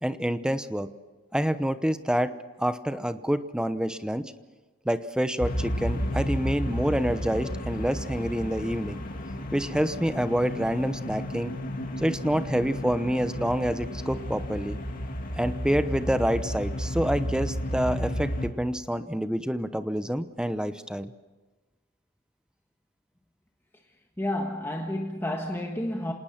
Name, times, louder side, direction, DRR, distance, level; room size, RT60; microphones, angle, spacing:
voice 1, 0.0-0.9 1.3-2.3 2.6-4.3 4.8-9.0 9.5-11.5 12.0-14.8 15.4-21.1, equal, 5° right, 0.9 m, -27 dB
sound 1, 5.4-18.5, equal, 40° left, 2.5 m, -32 dB
voice 2, 24.2-26.1, left 1 dB, 10° left, 1.5 m, -30 dB
27.0 x 19.0 x 5.9 m
head